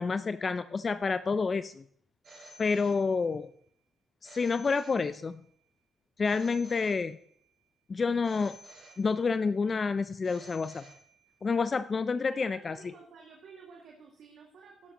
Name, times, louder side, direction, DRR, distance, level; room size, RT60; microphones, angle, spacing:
voice 1, 0.0-1.8 2.6-3.5 4.2-5.4 6.2-7.2 7.9-8.6 9.0-10.8 11.4-12.8, left 4 dB, 35° left, 13 dB, 0.4 m, -29 dB
Telephone, 2.2-3.5 4.2-5.5 6.2-7.5 8.2-9.5 10.2-11.5, right 1 dB, 45° right, 4.6 m, -53 dB
voice 2, 12.3-14.9, right 5 dB, 70° right, -1 dB, 2.0 m, -52 dB
12.5 x 11.0 x 2.9 m, 0.65 s
cardioid pair, 90°, 0 cm